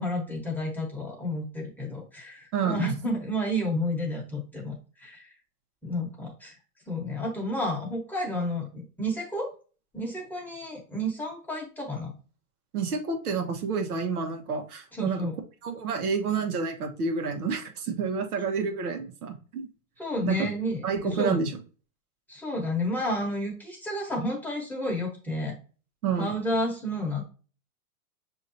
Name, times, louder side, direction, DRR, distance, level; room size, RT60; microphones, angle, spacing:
voice 1, 0.0-4.7 5.0-5.3 5.8-6.5 6.9-9.5 9.9-12.1 14.9-15.3 20.0-21.4 22.3-25.5 26.2-27.2, left 1 dB, 5° left, -2 dB, 1.1 m, -31 dB
voice 2, 2.5-2.9 12.7-15.3 15.6-19.7 20.2-20.5 20.8-21.5 26.0-26.3, right 5 dB, 75° right, 4 dB, 1.2 m, -29 dB
6.2 x 2.9 x 2.7 m, 0.36 s
hypercardioid pair, 125°, 45 cm